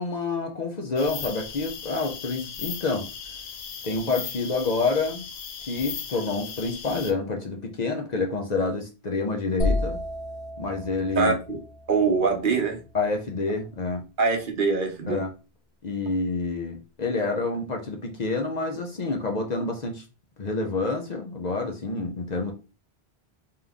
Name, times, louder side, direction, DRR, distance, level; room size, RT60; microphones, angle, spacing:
voice 1, 0.0-3.1 3.8-5.3 5.7-10.0 10.6-11.3 12.9-14.1 15.1-15.3 15.8-20.0 20.4-22.5, left 3 dB, 45° left, 2 dB, 0.7 m, -28 dB
sound 1, 1.0-7.1, left 7 dB, 85° left, 0.9 m, -37 dB
sound 2, 9.6-13.4, left 2 dB, 30° left, 1.3 m, -32 dB
voice 2, 11.2-11.6 11.9-12.8 14.2-15.2, right 4 dB, 55° right, 3 dB, 1.0 m, -23 dB
3.7 x 3.0 x 3.5 m, 0.31 s
omnidirectional pair, 1.1 m